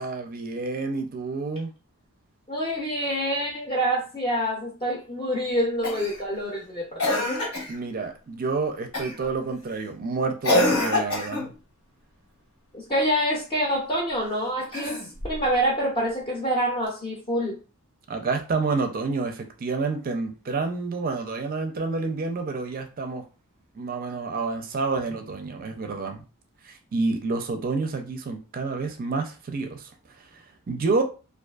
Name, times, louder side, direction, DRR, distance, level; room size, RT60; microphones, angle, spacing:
voice 1, 0.0-1.7 7.7-11.5 18.1-23.2 23.7-26.2 26.6-29.9 30.3-31.0, right 3 dB, 40° right, 5 dB, 0.4 m, -29 dB
voice 2, 2.5-7.3 12.7-17.6, equal, 25° left, -4 dB, 0.6 m, -26 dB
Cough, 5.8-6.2 7.0-7.8 8.9-9.3 10.4-11.5 14.6-15.4 16.9-17.0, left 1 dB, 70° left, 1.0 m, -25 dB
2.5 x 2.4 x 2.3 m, 0.34 s
head